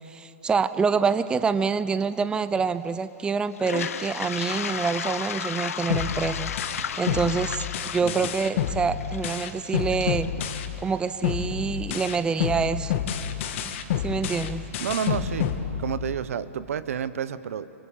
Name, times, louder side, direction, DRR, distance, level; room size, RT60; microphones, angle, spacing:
voice 1, 0.0-6.5 7.0-7.7 7.9-10.3 10.8-12.9 13.6-13.7 14.0-14.6, right 5 dB, 10° right, 13 dB, 0.6 m, -26 dB
Toilet flush, 3.5-11.4, left 8 dB, 75° left, 1.2 m, -34 dB
sound 1, 5.9-10.9 11.2-16.3, left 9 dB, 60° left, 2.1 m, -29 dB
voice 2, 14.8-15.5 15.8-17.8, right 8 dB, 75° right, 14 dB, 1.2 m, -30 dB
28.5 x 25.5 x 7.5 m, 2.9 s
hypercardioid pair, 130°, 8 cm